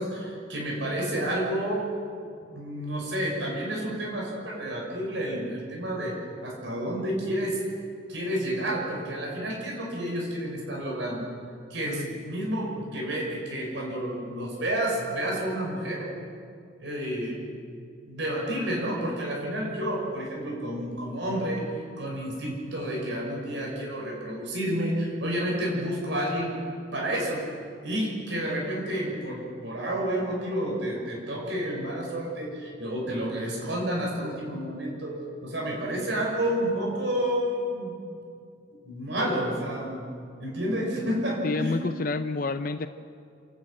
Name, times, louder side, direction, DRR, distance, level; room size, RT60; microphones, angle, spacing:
voice 1, 0.0-1.8 2.5-7.6 8.1-11.2 11.7-16.1 16.8-17.3 18.1-26.6 26.9-38.0 38.8-40.0 40.4-41.8, right 1 dB, 65° right, -2 dB, 6.2 m, -30 dB
voice 2, 41.4-42.9, left 3 dB, 45° left, 10 dB, 0.6 m, -29 dB
28.5 x 12.0 x 9.1 m, 2.4 s
head